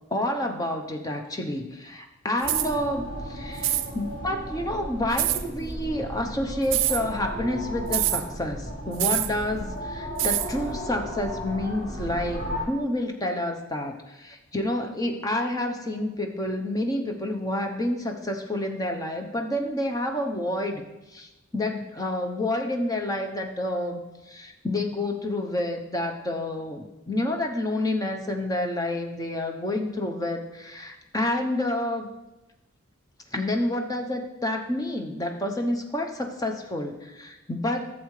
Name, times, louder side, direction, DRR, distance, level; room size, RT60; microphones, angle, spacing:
voice 1, 0.1-32.1 33.3-37.9, left 1 dB, 20° left, 3 dB, 0.8 m, -29 dB
sound 1, 2.4-12.6, equal, 40° left, 2.5 m, -35 dB
sound 2, 2.4-2.7 3.6-3.9 5.2-5.4 6.6-7.0 7.9-8.2 9.0-9.3 10.2-10.5, right 14 dB, 65° right, 0.5 m, -25 dB
12.0 x 7.5 x 3.2 m, 1.0 s
head